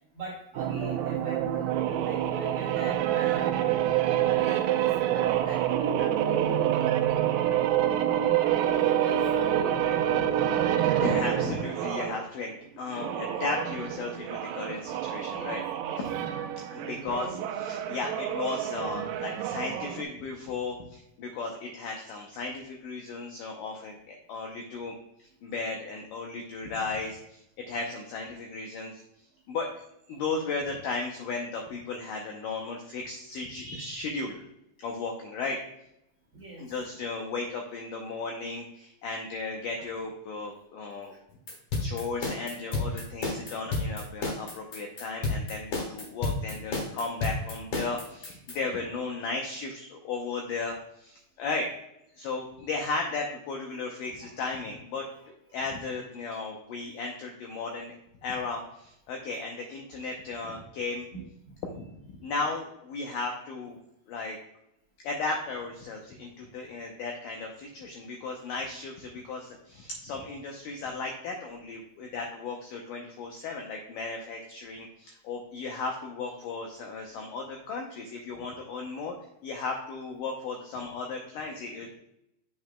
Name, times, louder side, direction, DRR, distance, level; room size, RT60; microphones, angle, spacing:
voice 1, 0.1-3.9 4.3-6.9 7.6-10.0 10.4-10.6 15.2-16.0 36.3-36.7 41.1-41.2 42.9-43.0 55.5-55.7 61.1-61.6, right 3 dB, 35° right, -4 dB, 2.1 m, -42 dB
sound 1, 0.6-12.2 12.9-20.0, right 11 dB, 85° right, 2.7 m, -27 dB
voice 2, 11.0-15.6 16.0-16.1 16.7-25.0 25.4-27.4 27.7-29.0 29.5-29.7 30.1-34.4 34.8-35.6 36.6-41.2 41.8-51.7 52.2-55.1 55.5-57.9 58.2-61.1 61.7-63.8 64.1-64.4 65.0-79.1 79.4-82.0, left 3 dB, 85° left, 2 dB, 1.9 m, -35 dB
sound 2, 41.5-48.6, left 2 dB, 60° left, 1.6 m, -31 dB
7.6 x 7.4 x 2.2 m, 0.81 s
omnidirectional pair, 4.8 m